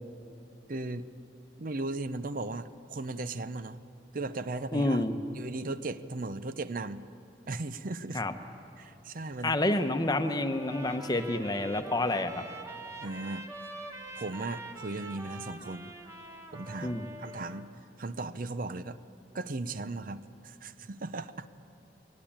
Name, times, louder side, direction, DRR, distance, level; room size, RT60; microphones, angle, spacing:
voice 1, 0.7-1.1 1.6-3.8 4.1-5.0 5.3-7.0 7.5-8.2 8.8-9.6 13.0-13.5 14.2-15.9 16.5-17.7 18.0-19.0 19.3-21.5, right 2 dB, 50° right, 13 dB, 0.6 m, -37 dB
voice 2, 4.7-5.2 8.1-8.3 9.4-12.4 16.8-17.1, left 2 dB, 20° left, 8 dB, 1.0 m, -28 dB
Trumpet, 10.5-17.7, right 2 dB, 15° right, 1.4 m, -45 dB
21.0 x 19.0 x 8.7 m, 2.7 s
head